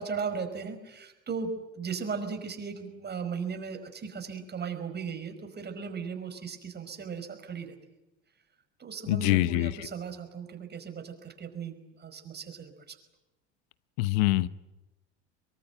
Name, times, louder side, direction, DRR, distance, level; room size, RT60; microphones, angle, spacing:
voice 1, 0.0-7.8 8.8-13.0, right 5 dB, 30° right, 7 dB, 5.2 m, -37 dB
voice 2, 9.1-9.7 14.0-14.5, left 18 dB, 65° left, 17 dB, 1.1 m, -24 dB
24.5 x 22.5 x 9.2 m, 0.99 s
hypercardioid pair, 75°, 34 cm